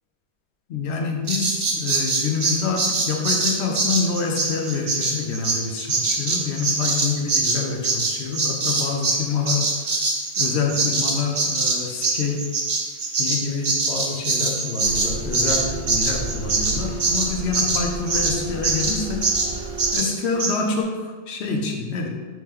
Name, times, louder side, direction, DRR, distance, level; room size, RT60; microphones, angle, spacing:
voice 1, 0.7-9.6 10.4-12.5 13.2-19.2 19.9-22.1, left 4 dB, 75° left, 2 dB, 0.8 m, -27 dB
Bird vocalization bird call bird song, 1.3-9.2 9.5-18.4 18.6-19.0 19.2-19.5 19.8-20.1 20.4-20.5, right 3 dB, 50° right, 0.3 m, -23 dB
sound 1, 14.8-20.0, right 3 dB, 80° right, 0.9 m, -32 dB
3.1 x 2.9 x 3.5 m, 1.4 s
omnidirectional pair, 1.2 m